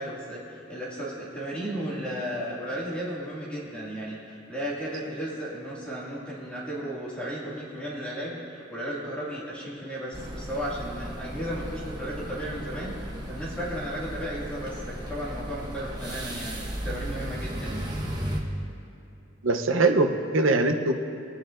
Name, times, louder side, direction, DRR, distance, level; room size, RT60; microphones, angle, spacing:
voice 1, 0.0-12.9 13.3-17.8, equal, 5° left, -7 dB, 2.1 m, -34 dB
sound 1, 10.1-18.4, equal, 20° right, 1.1 m, -35 dB
voice 2, 19.4-20.9, right 2 dB, 80° right, 6 dB, 0.8 m, -22 dB
20.0 x 9.4 x 2.5 m, 2.8 s
head